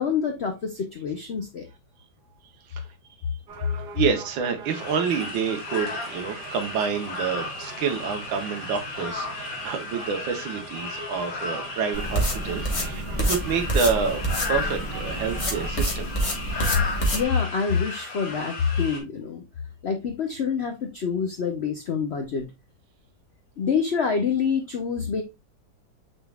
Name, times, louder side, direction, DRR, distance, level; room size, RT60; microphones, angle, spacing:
voice 1, 0.0-1.7 17.1-19.4 19.8-22.5 23.6-25.2, left 6 dB, 85° left, 0.5 m, -26 dB
sound 1, 3.5-15.7, right 5 dB, 65° right, 1.4 m, -42 dB
voice 2, 3.9-14.2 14.5-16.1, right 6 dB, 85° right, 1.7 m, -28 dB
sound 2, 4.6-19.0, left 3 dB, 50° left, 1.9 m, -35 dB
sound 3, 11.9-17.2, right 1 dB, 20° left, 0.9 m, -27 dB
6.4 x 3.5 x 2.3 m
omnidirectional pair, 2.1 m